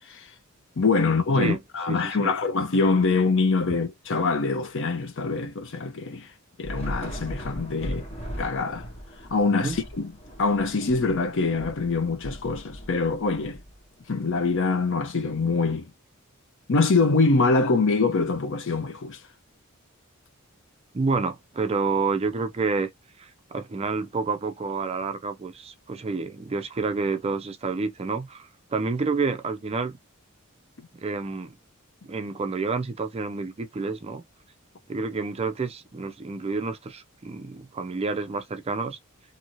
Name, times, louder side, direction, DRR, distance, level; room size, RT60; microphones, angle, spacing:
voice 1, 0.8-6.3 6.6-8.0 8.4-8.8 9.3-10.1 10.4-13.6 14.1-15.9 16.7-19.2, left 3 dB, 60° left, 0.7 m, -24 dB
voice 2, 1.9-2.3 7.9-8.1 9.6-9.8 20.9-22.9 23.2-30.0 31.0-31.6 32.0-34.2 34.9-39.0, right 4 dB, 30° right, 0.4 m, -29 dB
Thunder / Rain, 6.6-14.2, equal, 30° left, 1.2 m, -38 dB
2.7 x 2.7 x 2.9 m
head